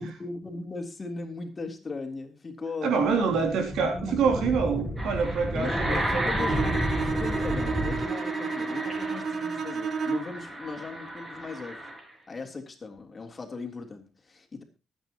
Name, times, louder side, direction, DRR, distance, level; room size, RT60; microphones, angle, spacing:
voice 1, 0.0-3.4 4.1-4.2 5.5-11.8 12.3-14.6, left 3 dB, 30° left, 3 dB, 3.5 m, -38 dB
voice 2, 2.8-6.3, right 5 dB, 80° right, 4 dB, 3.0 m, -26 dB
sound 1, 3.0-8.1, equal, 5° right, 4.7 m, -31 dB
sound 2, 5.0-12.1, right 1 dB, 20° right, 7.3 m, -34 dB
Bowed string instrument, 6.4-10.5, right 5 dB, 55° right, 1.3 m, -31 dB
23.5 x 9.3 x 3.0 m, 0.30 s
cardioid pair, 90°, 0 cm